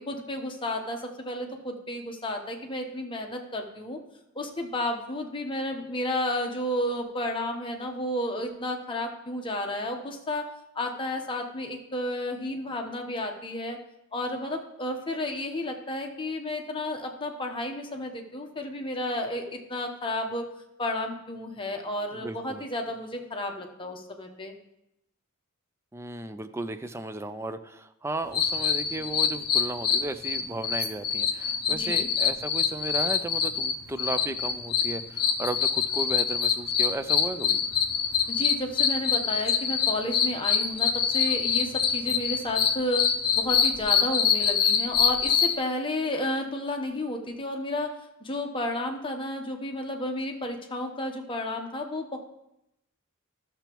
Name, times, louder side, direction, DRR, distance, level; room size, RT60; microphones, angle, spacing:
voice 1, 0.0-4.0 4.3-10.5 10.7-13.8 14.1-20.5 20.8-24.5 31.7-32.1 38.3-43.1 43.3-47.9 48.2-52.2, left 1 dB, 25° left, 3 dB, 0.9 m, -32 dB
voice 2, 22.1-22.6 25.9-37.6, right 2 dB, 10° right, 9 dB, 0.4 m, -35 dB
sound 1, 28.3-45.5, left 7 dB, 50° left, 0.7 m, -25 dB
13.0 x 6.8 x 3.0 m, 0.85 s
head